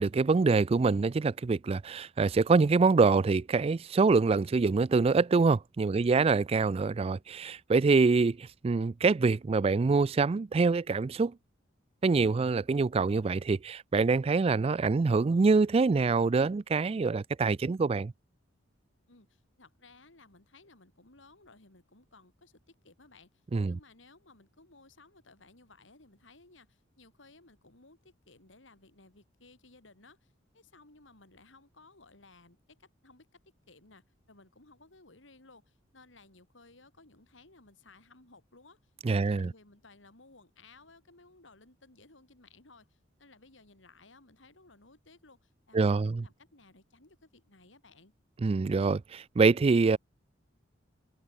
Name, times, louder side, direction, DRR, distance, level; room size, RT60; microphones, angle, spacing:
voice 1, 0.0-11.3 12.0-18.1 23.5-23.8 39.0-39.5 45.7-46.2 48.4-50.0, right 4 dB, 30° right, 0.3 m, -25 dB
voice 2, 5.9-6.2 19.1-33.4 33.7-38.9 39.2-48.1, left 3 dB, 75° left, 3.6 m, -58 dB
open air
head